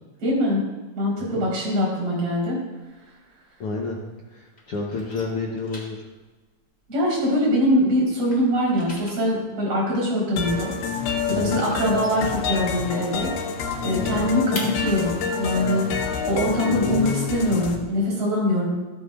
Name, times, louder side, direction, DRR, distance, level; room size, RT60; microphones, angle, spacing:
voice 1, 0.2-0.6 1.0-2.6 6.9-10.7 11.0-13.3 13.8-18.6, left 1 dB, 65° right, -5 dB, 5.9 m, -23 dB
voice 2, 1.2-1.5 3.6-4.0 4.3-6.1 11.3-11.6 14.0-14.3 16.7-17.8, left 4 dB, 70° left, -2 dB, 1.3 m, -30 dB
sound 1, 2.8-4.3 4.5-7.7 8.0-13.1 13.4-13.5 13.8-17.5, left 1 dB, 20° left, 2.0 m, -42 dB
sound 2, 10.4-17.8, left 5 dB, 90° left, 2.9 m, -28 dB
13.5 x 13.0 x 2.5 m, 1.2 s
omnidirectional pair, 4.1 m